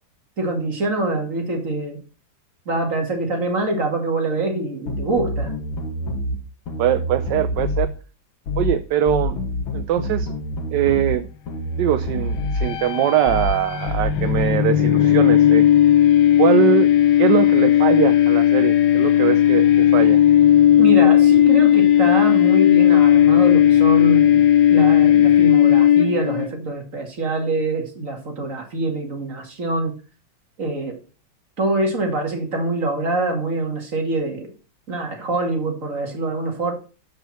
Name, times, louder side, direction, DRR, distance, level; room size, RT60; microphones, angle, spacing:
voice 1, 0.4-2.0 2.7-5.5 20.8-24.4 24.7-30.0 30.6-31.0 31.6-34.5 34.9-36.7, right 2 dB, 40° right, 2.6 m, -24 dB
sound 1, 4.9-6.4 6.7-7.9 8.5-8.8 9.1-11.2 11.5-12.7 13.3-13.6 13.9-14.5, left 1 dB, 85° left, 2.2 m, -26 dB
voice 2, 6.8-7.9 8.6-9.4 9.7-10.3 10.7-11.3 11.8-15.6 16.4-16.9 17.2-20.2, right 11 dB, 70° right, 1.2 m, -21 dB
sound 2, 12.4-26.5, left 11 dB, 70° left, 1.4 m, -15 dB
12.5 x 5.4 x 4.3 m
omnidirectional pair, 2.2 m